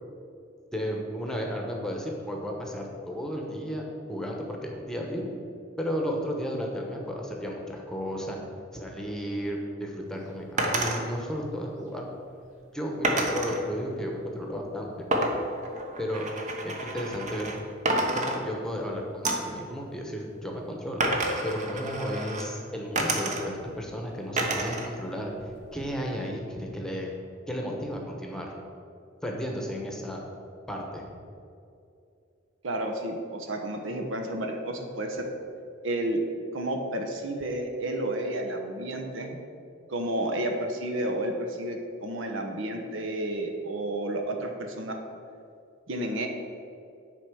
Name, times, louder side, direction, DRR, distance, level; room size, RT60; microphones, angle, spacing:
voice 1, 0.7-3.8 4.1-5.3 5.8-8.4 8.7-12.0 12.7-14.9 16.0-16.3 16.6-17.5 18.1-21.0 21.4-25.3 25.7-27.1 27.5-28.5 29.2-30.2 30.7-31.1, equal, 5° left, 0 dB, 1.1 m, -33 dB
Poker Chips landing on a wooden Table, 10.6-11.0 13.0-13.6 15.1-17.6 17.8-18.8 19.2-19.6 21.0-22.5 22.9-23.7 24.4-24.9 25.2-26.0, right 1 dB, 40° right, 0.9 m, -29 dB
voice 2, 32.6-35.3 35.8-36.2 36.5-39.4 39.9-45.0 45.9-46.3, right 1 dB, 70° right, 3 dB, 1.0 m, -31 dB
9.9 x 4.4 x 6.3 m, 2.5 s
head